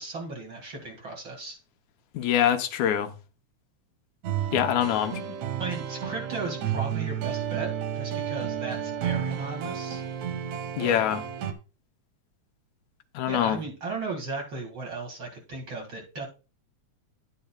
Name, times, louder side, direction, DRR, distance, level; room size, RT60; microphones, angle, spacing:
voice 1, 0.0-1.6 5.6-7.7 7.9-10.0 10.8-11.0 13.3-16.3, right 3 dB, 45° right, 2.5 m, -36 dB
voice 2, 2.1-3.1 4.5-5.4 10.8-11.2 13.1-13.6, left 10 dB, 80° left, 2.1 m, -24 dB
sound 1, 4.2-11.5, right 9 dB, 80° right, 2.2 m, -32 dB
11.0 x 8.9 x 2.3 m
omnidirectional pair, 3.3 m